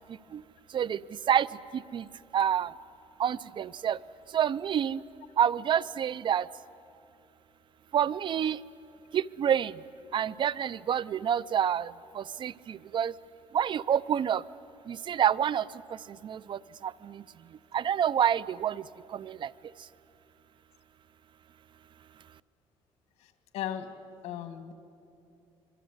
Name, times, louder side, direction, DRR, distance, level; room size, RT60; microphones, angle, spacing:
voice 1, 1.7-2.1 2.3-2.7 3.2-4.0 4.3-5.0 5.4-6.5 7.9-8.6 9.1-9.7 10.1-13.1 13.5-14.4 14.9-15.6 16.2-17.2 17.7-18.8 19.1-19.5, right 9 dB, 50° right, 19 dB, 0.6 m, -28 dB
voice 2, 23.5-23.9 24.2-24.7, left 10 dB, 85° left, 9 dB, 1.7 m, -35 dB
26.0 x 23.0 x 8.1 m, 2.7 s
cardioid pair, 105°, 11 cm